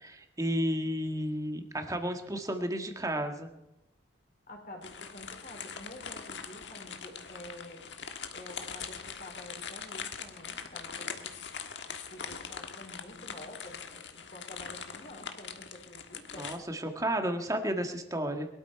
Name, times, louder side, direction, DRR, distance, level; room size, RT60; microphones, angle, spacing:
voice 1, 0.0-3.5 16.3-18.5, equal, 20° right, 5 dB, 1.6 m, -32 dB
voice 2, 4.5-7.9 8.3-11.3 11.9-16.5, left 1 dB, 50° left, 0 dB, 4.2 m, -49 dB
sound 1, 4.8-16.6, left 6 dB, 75° left, 1.4 m, -42 dB
22.5 x 12.5 x 4.6 m, 0.92 s
head